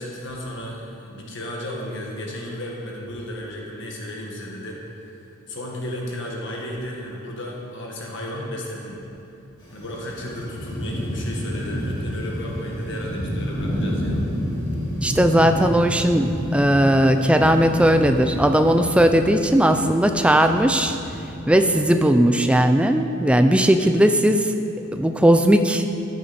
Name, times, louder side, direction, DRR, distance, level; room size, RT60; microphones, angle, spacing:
voice 1, 0.0-5.2 5.5-9.0 9.7-14.2, left 1 dB, 60° left, -2 dB, 1.7 m, -34 dB
sound 1, 9.6-21.3, equal, 25° left, 3.0 m, -29 dB
voice 2, 15.0-21.0 21.5-24.5 24.9-25.8, right 1 dB, 5° right, 6 dB, 0.4 m, -18 dB
14.0 x 8.5 x 4.3 m, 2.7 s
head